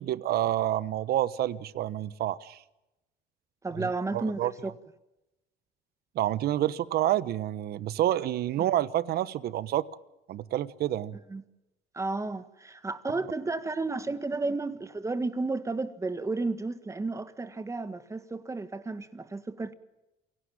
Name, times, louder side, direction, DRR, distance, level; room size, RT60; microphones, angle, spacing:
voice 1, 0.0-2.6 3.7-4.5 6.1-9.9 10.3-11.2, right 13 dB, 65° right, 1.0 m, -28 dB
voice 2, 3.6-4.7 11.3-11.4 11.9-19.7, right 3 dB, 15° right, 1.8 m, -32 dB
28.0 x 18.0 x 8.8 m
cardioid pair, 110°, 17 cm